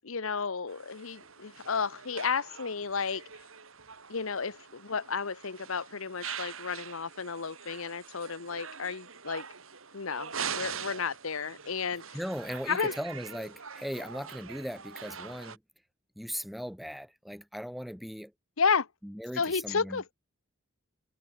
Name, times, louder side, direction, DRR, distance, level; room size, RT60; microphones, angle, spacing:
voice 1, 0.0-3.2 4.1-9.5 9.9-12.0 12.7-13.0 18.6-18.9 19.4-20.2, left 5 dB, 70° left, 1.1 m, -32 dB
sound 1, 0.7-15.6, right 7 dB, 70° right, 3.5 m, -43 dB
voice 2, 12.1-15.6 16.2-18.3 19.0-20.0, equal, ahead, 0.9 m, -38 dB
head